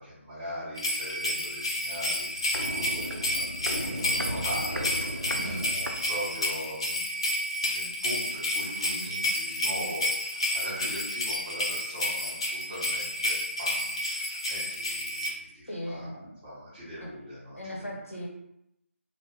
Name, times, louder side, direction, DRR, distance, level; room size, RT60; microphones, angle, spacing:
voice 1, 0.0-2.3 2.6-7.0 7.6-16.1 16.4-17.7, equal, 25° right, -16 dB, 1.2 m, -40 dB
sound 1, 0.7-15.3, left 1 dB, 25° left, 0.3 m, -30 dB
Walk footsteps, 2.0-6.7 6.9-7.0, right 1 dB, 85° right, 0.4 m, -36 dB
voice 2, 5.2-5.7 15.7-16.3 17.0-17.1 17.6-18.3, equal, 80° left, -2 dB, 1.0 m, -37 dB
2.7 x 2.2 x 3.3 m, 0.82 s
figure-of-eight pair, 155°, 7 cm